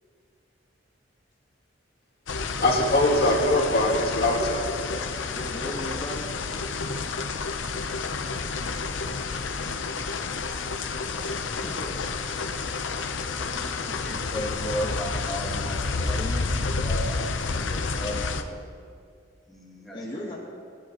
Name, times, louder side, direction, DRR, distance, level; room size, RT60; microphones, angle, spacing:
sound 1, 2.3-18.4, left 4 dB, 80° left, 0.7 m, -30 dB
voice 1, 2.6-4.6, left 1 dB, 55° left, -1 dB, 2.0 m, -22 dB
voice 2, 5.3-6.3 11.4-12.0 19.9-20.4, left 1 dB, 25° left, -6 dB, 1.4 m, -36 dB
voice 3, 13.4-16.4 16.8-18.7 19.5-20.4, equal, ahead, -4 dB, 1.7 m, -36 dB
26.5 x 10.5 x 3.0 m, 2.4 s
head